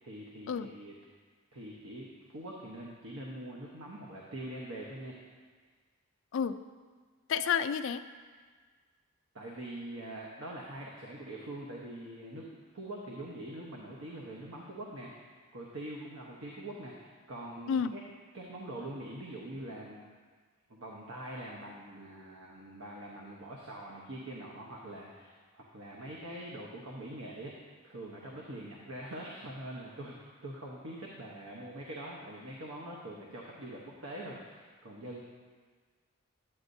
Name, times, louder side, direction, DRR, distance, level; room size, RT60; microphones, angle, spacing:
voice 1, 0.0-0.9 1.5-5.3 9.3-15.3 15.5-18.0 18.3-20.0 20.7-35.2, right 1 dB, 75° right, -3 dB, 0.9 m, -44 dB
voice 2, 7.3-8.0 17.7-17.9, left 7 dB, 60° left, 12 dB, 0.3 m, -30 dB
9.7 x 8.7 x 2.6 m, 1.5 s
head